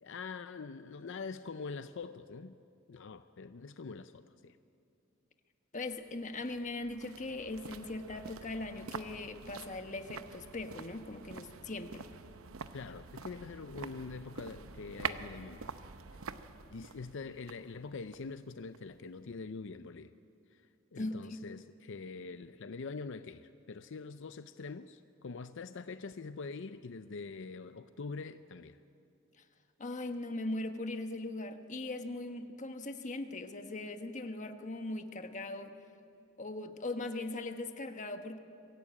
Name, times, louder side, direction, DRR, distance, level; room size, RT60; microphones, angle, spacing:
voice 1, 0.0-2.6 2.9-4.6 12.7-15.7 16.7-20.1 20.5-28.8, left 4 dB, 65° left, 11 dB, 0.5 m, -44 dB
voice 2, 5.7-12.1 21.0-21.4 29.8-35.7 36.4-38.4, left 2 dB, 40° left, 7 dB, 1.2 m, -40 dB
sound 1, 5.8-19.0 19.3-19.4, right 5 dB, 85° right, 0.8 m, -46 dB
24.0 x 16.0 x 8.6 m, 2.6 s
head